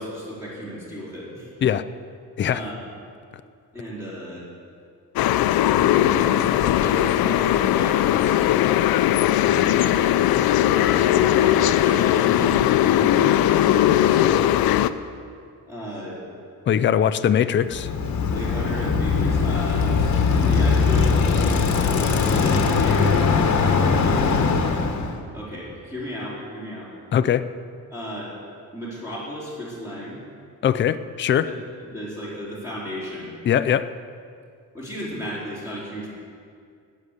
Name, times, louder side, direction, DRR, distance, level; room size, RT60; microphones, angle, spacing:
voice 1, 0.0-1.5 2.5-2.8 3.7-4.4 5.7-8.6 9.3-14.5 15.7-16.2 16.9-17.0 18.3-24.5 25.3-26.9 27.9-28.3 28.7-30.2 31.5-33.3 34.7-36.1, equal, 10° right, -8 dB, 3.9 m, -34 dB
sound 1, 5.2-14.9, left 12 dB, 85° left, 0.5 m, -19 dB
voice 2, 16.7-17.9 27.1-27.5 30.6-31.5 33.4-33.9, left 9 dB, 35° left, 12 dB, 0.4 m, -21 dB
Bicycle, 17.6-25.1, left 5 dB, 50° left, 1.2 m, -20 dB
14.5 x 6.5 x 9.8 m, 2.3 s
cardioid pair, 160°, 36 cm